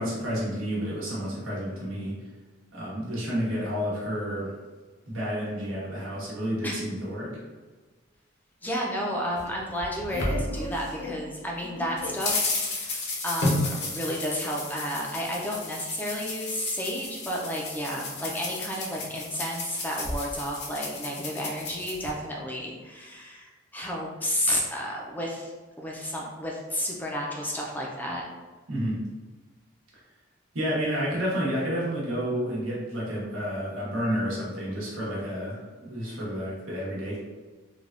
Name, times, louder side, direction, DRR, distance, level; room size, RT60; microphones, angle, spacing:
voice 1, 0.0-2.2 2.7-4.5 5.1-7.3 28.7-29.0 30.5-37.2, equal, 85° right, -6 dB, 1.0 m, -30 dB
voice 2, 8.6-13.0 13.2-25.5 25.8-28.2, equal, 10° left, -2 dB, 0.4 m, -32 dB
sound 1, 9.4-11.2 11.6-22.1, left 2 dB, 55° left, 0.6 m, -32 dB
3.3 x 2.2 x 2.4 m, 1.3 s
head